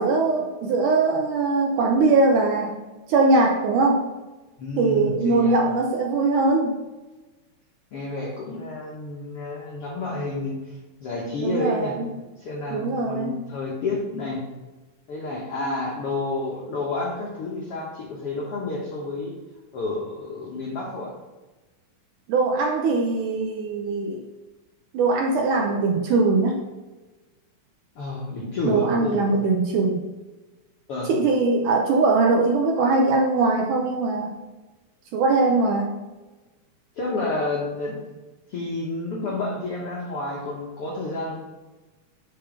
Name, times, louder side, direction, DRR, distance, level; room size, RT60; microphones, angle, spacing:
voice 1, 0.0-2.7 3.1-4.0 4.8-6.7 11.4-12.1 12.7-13.4 22.3-24.2 24.9-26.6 28.6-30.0 31.1-34.3 35.1-35.9, right 3 dB, 75° right, 1 dB, 2.0 m, -21 dB
voice 2, 4.6-5.6 7.9-11.9 12.4-14.4 15.1-19.3 19.7-21.1 27.9-29.2 30.9-31.1 37.0-38.0 38.5-41.4, left 2 dB, 70° left, -4 dB, 1.4 m, -30 dB
5.8 x 5.4 x 5.3 m, 1.2 s
omnidirectional pair, 4.2 m